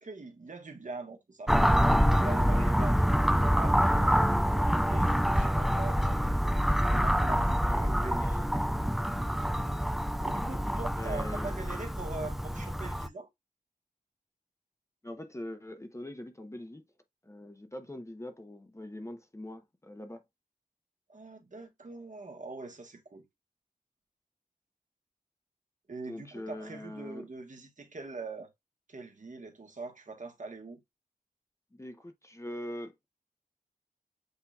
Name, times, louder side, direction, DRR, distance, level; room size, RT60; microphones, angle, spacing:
voice 1, 0.0-4.3 4.7-6.3 6.8-8.6 10.2-13.3 21.1-23.2 25.9-28.5 28.9-30.8, right 3 dB, 60° right, 1.3 m, -43 dB
sound 1, 1.5-13.1, equal, ahead, 0.3 m, -26 dB
voice 2, 11.0-11.6 15.0-16.8 17.2-20.2 26.1-27.3 31.7-33.1, left 1 dB, 20° left, 0.8 m, -42 dB
8.2 x 2.8 x 2.3 m
wide cardioid pair, 55°, 15 cm